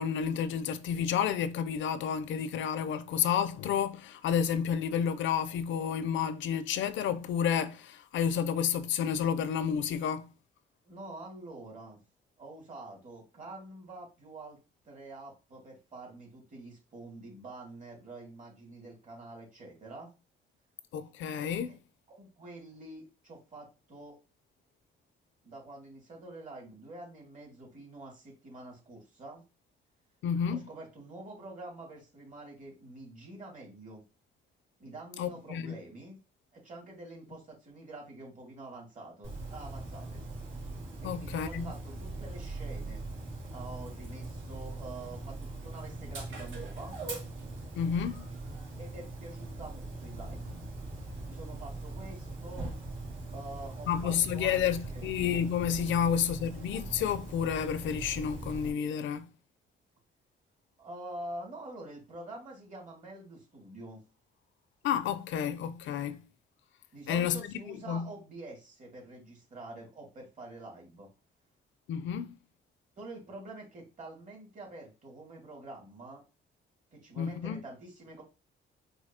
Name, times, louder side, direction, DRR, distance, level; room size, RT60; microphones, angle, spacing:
voice 1, 0.0-10.3 20.9-21.8 30.2-30.7 35.2-35.8 41.0-41.7 47.8-48.3 53.9-59.3 64.8-66.2 67.1-67.5 67.9-68.1 71.9-72.3 77.2-77.6, left 8 dB, 75° left, 0.5 m, -30 dB
voice 2, 10.8-12.0 12.4-14.6 14.8-20.1 21.7-21.8 22.1-24.2 25.4-29.4 30.5-34.0 34.8-36.2 36.5-40.2 41.0-43.1 43.5-46.9 48.8-50.6 51.3-52.7 53.3-55.1 55.9-56.1 60.8-64.0 66.9-71.1 73.0-76.2 76.9-78.2, right 2 dB, 40° right, 2.3 m, -46 dB
Dog, 39.2-58.7, right 2 dB, 70° right, 2.1 m, -41 dB
4.9 x 2.7 x 2.8 m
cardioid pair, 90°, 20 cm